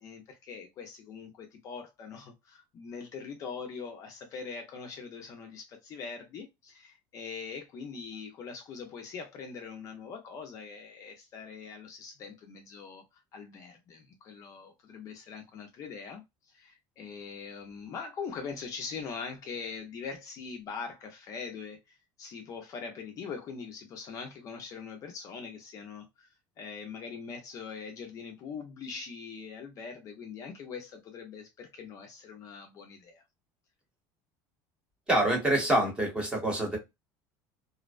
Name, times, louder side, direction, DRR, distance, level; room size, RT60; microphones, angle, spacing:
voice 1, 0.0-26.3 26.6-33.2, left 5 dB, 35° left, 0.5 m, -42 dB
voice 2, 35.1-36.8, right 1 dB, 10° right, 0.9 m, -26 dB
2.5 x 2.1 x 2.4 m
cardioid pair, 160°, 9 cm